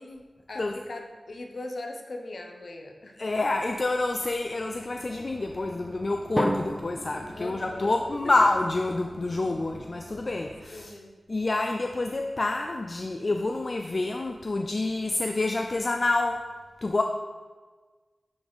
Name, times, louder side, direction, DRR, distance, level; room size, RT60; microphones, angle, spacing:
voice 1, 0.0-3.2 7.3-8.0 10.7-11.2, left 2 dB, 65° left, 3 dB, 0.9 m, -40 dB
voice 2, 3.2-10.9 11.3-16.4 16.8-17.0, left 2 dB, 45° left, 4 dB, 0.4 m, -27 dB
sound 1, 4.4-10.6, right 2 dB, 65° right, 2.0 m, -48 dB
Drum, 6.4-8.4, equal, 5° right, 0.6 m, -33 dB
10.5 x 3.9 x 3.6 m, 1.4 s
wide cardioid pair, 65°, 0 cm